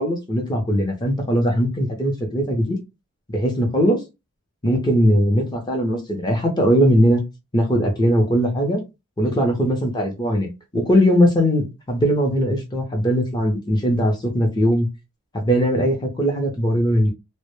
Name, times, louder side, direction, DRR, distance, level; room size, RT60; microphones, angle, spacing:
voice 1, 0.0-2.8 3.3-4.0 4.6-7.2 7.5-8.8 9.2-14.9 15.3-17.1, equal, 20° left, 2 dB, 0.5 m, -20 dB
2.0 x 2.0 x 3.0 m, 0.24 s
head